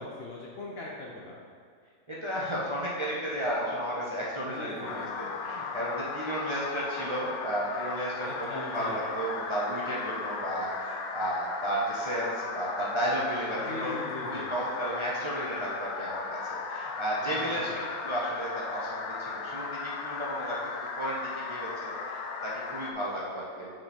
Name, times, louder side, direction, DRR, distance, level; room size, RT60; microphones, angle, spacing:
voice 1, 0.0-1.4 4.5-5.3 8.2-9.1 13.6-14.5 17.2-17.8, left 2 dB, 55° left, -2 dB, 0.7 m, -40 dB
voice 2, 2.1-17.7 18.0-20.7 21.0-23.7, equal, 30° right, -6 dB, 0.6 m, -33 dB
sound 1, 4.9-22.9, left 4 dB, 80° left, 1.1 m, -37 dB
6.3 x 4.5 x 4.2 m, 2.1 s
omnidirectional pair, 1.6 m